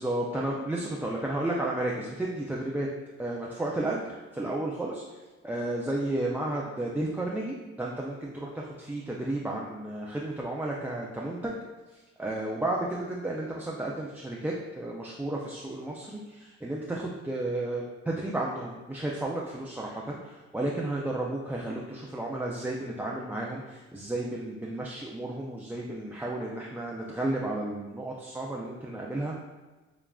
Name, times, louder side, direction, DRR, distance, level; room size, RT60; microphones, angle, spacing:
voice 1, 0.0-2.9 3.2-5.0 5.4-11.5 12.2-29.3, right 1 dB, 5° right, -3 dB, 0.4 m, -32 dB
6.9 x 2.3 x 2.3 m, 1.2 s
cardioid pair, 90°, 30 cm